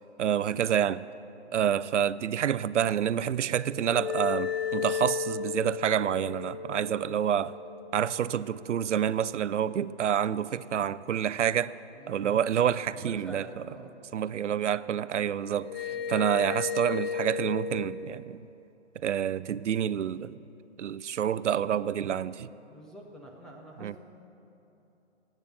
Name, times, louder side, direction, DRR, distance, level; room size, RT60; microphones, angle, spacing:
voice 1, 0.2-1.0 1.5-7.5 7.9-11.7 12.1-13.6 14.1-18.5 19.0-20.4 20.8-22.5 23.8-23.9, right 9 dB, 85° right, 0.5 m, -28 dB
sound 1, 3.6-8.9 15.6-17.9, left 7 dB, 55° left, 1.1 m, -34 dB
voice 2, 12.9-13.9 15.9-16.1 22.7-24.0, right 1 dB, ahead, 0.6 m, -47 dB
18.0 x 9.1 x 6.1 m
hypercardioid pair, 145°, 35 cm